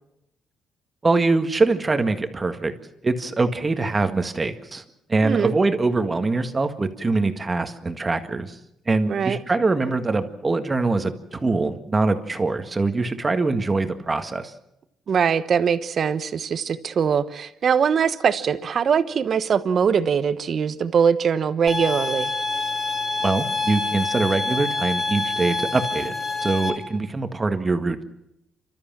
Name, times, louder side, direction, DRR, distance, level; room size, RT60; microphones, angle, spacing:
voice 1, 1.0-2.7 3.0-4.8 5.1-8.6 8.9-14.5 23.2-26.1 26.4-28.0, right 3 dB, 25° right, 8 dB, 1.8 m, -23 dB
voice 2, 5.2-5.5 9.1-9.4 15.1-22.3, right 7 dB, 55° right, 13 dB, 1.1 m, -22 dB
sound 1, 21.7-26.7, left 3 dB, 15° left, 5.3 m, -26 dB
30.0 x 13.0 x 7.5 m, 0.83 s
cardioid pair, 90°, 0 cm